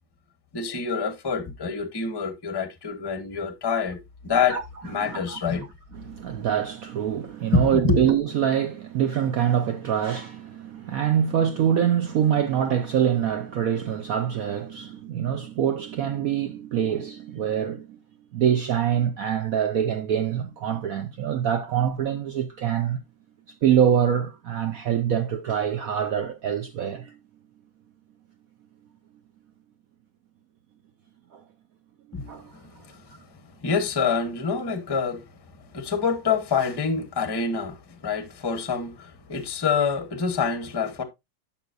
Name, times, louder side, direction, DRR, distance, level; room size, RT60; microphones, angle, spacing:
voice 1, 0.5-4.6 4.8-5.7 7.5-8.0 32.1-32.2 32.5-32.7 33.6-35.2 35.7-41.0, left 5 dB, 20° left, 0.6 m, -26 dB
voice 2, 5.0-5.7 5.9-18.0 18.3-23.0 23.6-27.1 31.3-31.4 32.2-32.5, right 9 dB, 70° right, 0.8 m, -25 dB
11.0 x 5.8 x 2.5 m
omnidirectional pair, 2.1 m